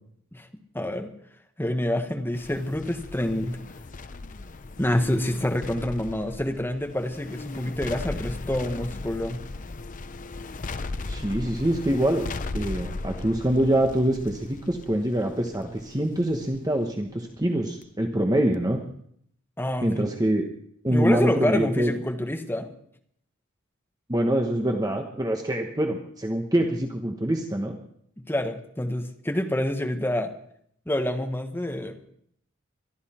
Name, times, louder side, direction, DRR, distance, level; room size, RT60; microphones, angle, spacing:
voice 1, 0.7-1.1 1.6-3.6 4.8-9.4 19.6-20.0 20.9-22.7 28.3-30.3 30.9-32.0, left 1 dB, 10° left, 5 dB, 1.3 m, -27 dB
sound 1, 2.3-17.8 18.2-18.3, left 3 dB, 40° left, 0.6 m, -37 dB
voice 2, 11.1-12.3 12.5-18.8 19.8-20.5 20.8-21.9 24.1-27.8, right 1 dB, 20° right, 3 dB, 1.1 m, -25 dB
22.5 x 12.5 x 4.4 m, 0.67 s
head